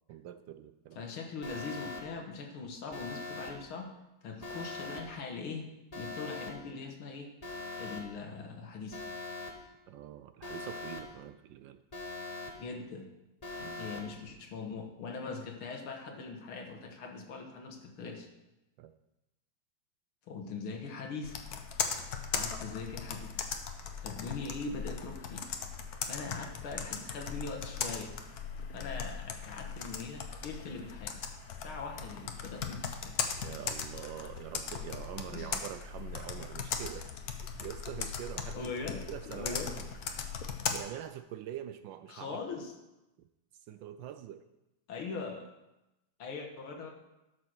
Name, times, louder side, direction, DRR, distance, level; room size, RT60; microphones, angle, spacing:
voice 1, 0.1-1.1 9.9-11.8 13.6-13.9 18.8-18.9 33.4-38.7 39.1-39.9 40.7-42.4 43.7-44.4, right 11 dB, 75° right, 10 dB, 1.2 m, -44 dB
voice 2, 1.0-3.9 4.2-7.3 7.8-9.0 12.6-13.1 13.6-18.3 20.3-21.4 22.3-23.4 24.0-25.5 26.0-28.2 28.7-31.2 31.5-33.2 35.3-35.5 38.5-39.7 40.1-40.4 42.1-42.7 44.9-45.5 46.2-46.9, left 4 dB, 80° left, 3 dB, 2.2 m, -41 dB
Alarm, 1.4-2.0 2.9-3.5 4.4-5.0 5.9-6.5 7.4-8.0 8.9-9.5 10.4-11.0 11.9-12.5 13.4-14.0, left 3 dB, 20° left, 1.2 m, -41 dB
Computer keyboard, 21.2-40.8, left 6 dB, 55° left, 1.2 m, -38 dB
12.0 x 6.4 x 6.2 m, 0.96 s
omnidirectional pair, 2.3 m